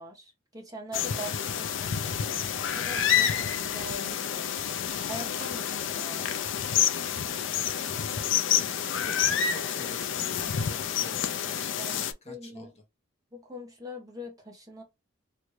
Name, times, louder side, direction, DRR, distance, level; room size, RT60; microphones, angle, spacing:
voice 1, 0.0-4.5 5.1-6.3 11.8-12.7 13.3-14.8, equal, 15° right, 1.0 m, -43 dB
sound 1, 0.9-12.1, left 9 dB, 65° left, 0.4 m, -29 dB
voice 2, 3.2-3.7 8.3-8.7 9.0-12.7, left 1 dB, 30° left, 0.9 m, -47 dB
3.1 x 2.5 x 3.1 m
head